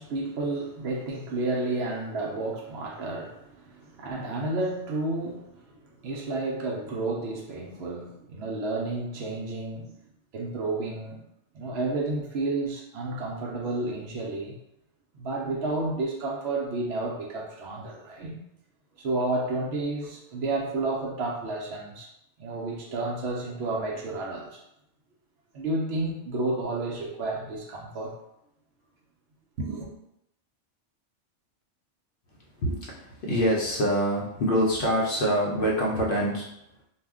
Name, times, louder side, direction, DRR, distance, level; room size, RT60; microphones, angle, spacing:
voice 1, 0.0-9.9 10.3-11.2 11.5-14.6 15.1-18.4 19.0-22.1 22.4-24.6 25.5-28.2 29.6-29.9, right 2 dB, 65° right, -1 dB, 0.8 m, -31 dB
voice 2, 32.6-36.5, equal, 60° left, -3 dB, 0.7 m, -25 dB
2.4 x 2.1 x 3.5 m, 0.80 s
omnidirectional pair, 1.2 m